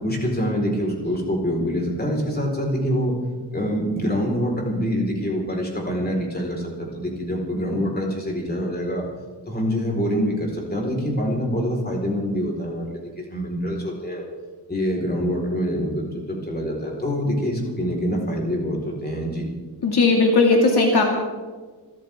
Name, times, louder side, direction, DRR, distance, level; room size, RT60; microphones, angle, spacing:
voice 1, 0.0-3.2 3.5-9.1 9.5-13.0 13.3-14.3 14.7-19.5, equal, 25° left, 0 dB, 4.4 m, -25 dB
voice 2, 19.8-21.0, left 3 dB, 65° left, 0 dB, 2.3 m, -17 dB
28.0 x 14.0 x 3.6 m, 1.4 s
wide cardioid pair, 155°, 42 cm